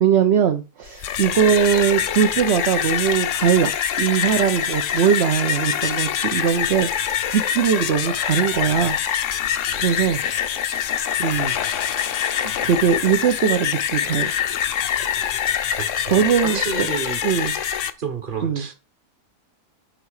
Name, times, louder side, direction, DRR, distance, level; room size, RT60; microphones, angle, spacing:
voice 1, 0.0-3.7 4.0-9.0 9.7-10.6 11.2-11.6 12.6-14.3 16.1-16.6 17.2-17.6 18.4-18.7, right 8 dB, 50° right, 0.9 m, -20 dB
sound 1, 0.9-17.9, left 9 dB, 60° left, 0.9 m, -24 dB
voice 2, 15.8-17.2 18.0-18.7, right 5 dB, 35° right, 1.4 m, -30 dB
10.0 x 4.7 x 4.9 m
omnidirectional pair, 1.7 m